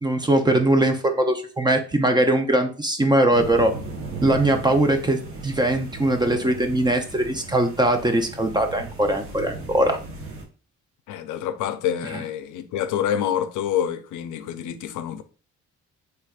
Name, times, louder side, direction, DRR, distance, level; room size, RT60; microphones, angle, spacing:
voice 1, 0.0-3.8 4.2-10.0 12.1-12.2, right 1 dB, 15° right, 0.5 m, -21 dB
sound 1, 3.3-10.4, right 3 dB, 45° right, 1.0 m, -36 dB
voice 2, 11.1-15.2, left 10 dB, 80° left, 0.5 m, -27 dB
3.3 x 3.3 x 2.3 m
cardioid pair, 90°, 30 cm